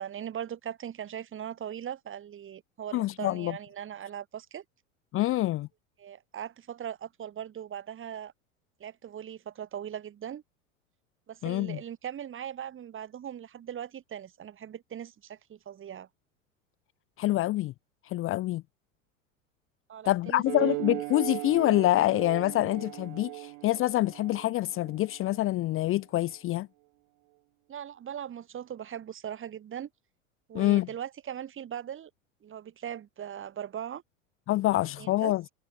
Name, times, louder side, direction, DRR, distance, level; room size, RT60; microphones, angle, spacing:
voice 1, 0.0-4.6 6.0-8.3 8.8-10.4 11.3-16.1 19.9-20.4 27.7-29.9 30.5-32.1 32.4-34.0 35.0-35.3, right 9 dB, 30° right, 6.2 m, -39 dB
voice 2, 2.9-3.5 5.1-5.7 11.4-11.8 17.2-17.7 18.0-18.6 20.1-26.7 30.5-30.9 34.5-35.4, left 16 dB, 30° left, 0.8 m, -26 dB
sound 1, 20.5-25.4, right 35 dB, 50° right, 2.1 m, -37 dB
hypercardioid pair, 90°, 40 cm